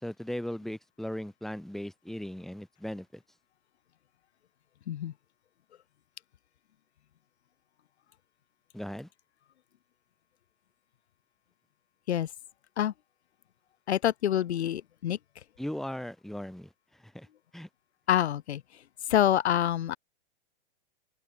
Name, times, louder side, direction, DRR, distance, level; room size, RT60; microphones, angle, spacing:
voice 1, 0.0-3.2 8.7-9.1 15.6-16.7 17.0-17.3 17.5-17.7, left 1 dB, ahead, 2.4 m, -37 dB
voice 2, 13.9-15.2 18.1-18.6 19.1-20.0, left 11 dB, 75° left, 2.5 m, -26 dB
hypercardioid pair, 145°, 33 cm